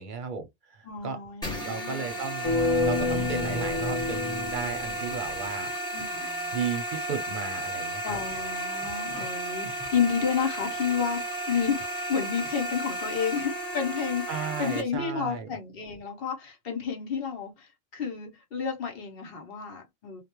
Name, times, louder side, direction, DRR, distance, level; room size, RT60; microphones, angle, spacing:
voice 1, 0.0-1.2 1.6-2.5 2.8-5.7 6.5-8.2 14.3-15.5, right 6 dB, 55° right, 0.7 m, -34 dB
voice 2, 0.8-2.1 5.9-6.6 8.0-20.2, left 7 dB, 60° left, 1.0 m, -31 dB
sound 1, 1.4-14.8, right 1 dB, 5° left, 0.6 m, -34 dB
sound 2, 2.4-5.4, left 2 dB, 40° left, 0.6 m, -28 dB
2.3 x 2.1 x 2.9 m
omnidirectional pair, 1.1 m